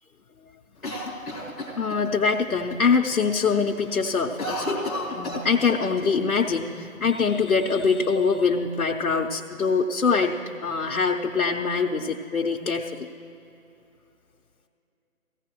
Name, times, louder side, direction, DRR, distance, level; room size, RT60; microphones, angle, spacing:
Cough, 0.8-2.3 2.7-2.8 3.1-3.5 3.8-6.1 6.3-6.4 7.2-8.0, left 1 dB, ahead, 0.7 m, -32 dB
voice 1, 1.8-4.7 5.1-13.1, left 5 dB, 85° left, -1 dB, 0.9 m, -24 dB
18.5 x 16.0 x 3.0 m, 2.9 s
figure-of-eight pair, 145°, 42 cm